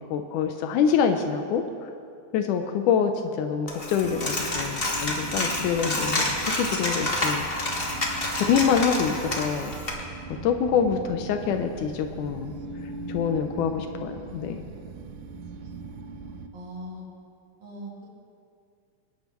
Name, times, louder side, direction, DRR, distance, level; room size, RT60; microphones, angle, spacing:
voice 1, 0.0-1.6 2.3-3.1 3.4-7.5 8.5-10.1 10.4-12.5 13.1-14.7, left 7 dB, 80° left, 6 dB, 2.1 m, -25 dB
Coin (dropping), 3.7-9.9, left 2 dB, 55° left, 0.6 m, -29 dB
sound 1, 4.0-16.5, right 3 dB, 85° right, 2.3 m, -39 dB
voice 2, 16.5-17.0 17.6-18.0, equal, 60° right, -8 dB, 4.6 m, -39 dB
24.0 x 10.5 x 3.0 m, 2.4 s
omnidirectional pair, 3.7 m